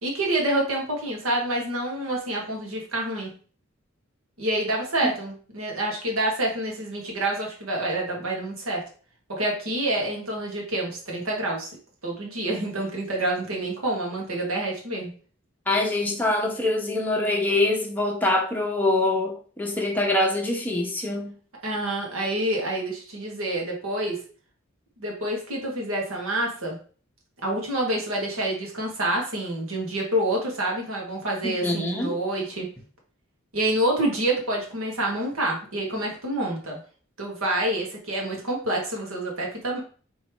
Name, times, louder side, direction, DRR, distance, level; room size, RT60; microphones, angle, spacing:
voice 1, 0.0-3.3 4.4-8.8 9.3-11.7 12.0-15.1 21.6-24.2 25.0-26.8 27.4-32.7 33.5-36.8 37.2-39.8, right 1 dB, 85° right, 1.5 m, -27 dB
voice 2, 15.7-21.3 31.4-32.2, left 2 dB, 10° left, 0.8 m, -24 dB
3.4 x 3.1 x 4.4 m
head